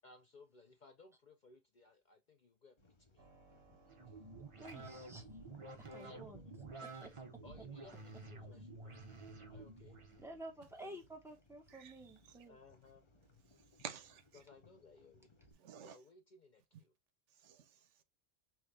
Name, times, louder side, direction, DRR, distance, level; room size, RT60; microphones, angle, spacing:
voice 1, 0.0-3.3 4.1-4.2 6.0-6.5 7.4-9.0 9.4-10.0 12.5-13.4 14.3-15.3 15.8-17.0, left 3 dB, 50° left, 0.6 m, -62 dB
sound 1, 2.8-15.5, left 3 dB, 25° left, 0.9 m, -66 dB
Keyboard (musical), 3.2-15.9, right 2 dB, 50° right, 1.8 m, -72 dB
sound 2, 3.9-10.2, right 3 dB, 30° right, 0.8 m, -51 dB
voice 2, 4.6-5.3 5.9-6.4 6.8-7.4 10.2-12.6, right 1 dB, ahead, 1.0 m, -52 dB
voice 3, 13.8-14.4 15.6-16.0 17.3-18.0, right 8 dB, 80° right, 1.0 m, -51 dB
6.0 x 2.4 x 3.2 m
omnidirectional pair, 1.2 m